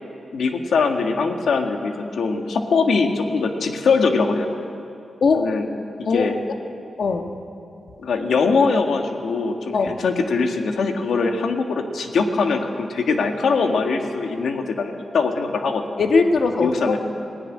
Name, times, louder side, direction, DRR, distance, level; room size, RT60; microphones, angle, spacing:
voice 1, 0.3-4.6 5.3-5.7 6.1-6.4 8.0-15.8 16.6-17.0, left 4 dB, 85° left, 4 dB, 1.8 m, -22 dB
voice 2, 5.2-5.5 6.0-6.3 7.0-7.4 9.7-9.9 16.0-17.0, left 4 dB, 65° left, 5 dB, 1.5 m, -20 dB
18.5 x 17.0 x 9.6 m, 2.7 s
wide cardioid pair, 140°, 0 cm